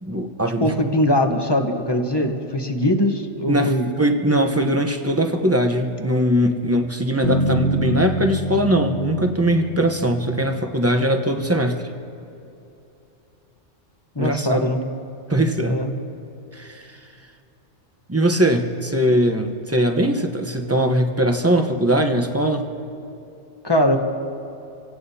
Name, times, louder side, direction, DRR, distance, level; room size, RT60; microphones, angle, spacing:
voice 1, 0.0-0.8 3.5-11.9 14.2-14.7 15.3-15.9 16.5-17.1 18.1-22.7, equal, 15° right, 5 dB, 0.8 m, -21 dB
voice 2, 0.6-3.9 14.1-14.8 15.7-15.9 23.6-24.0, left 1 dB, 25° left, 4 dB, 1.0 m, -21 dB
Bass guitar, 7.2-11.3, right 1 dB, 70° left, 1.9 m, -26 dB
26.5 x 17.0 x 2.8 m, 2.9 s
omnidirectional pair, 1.1 m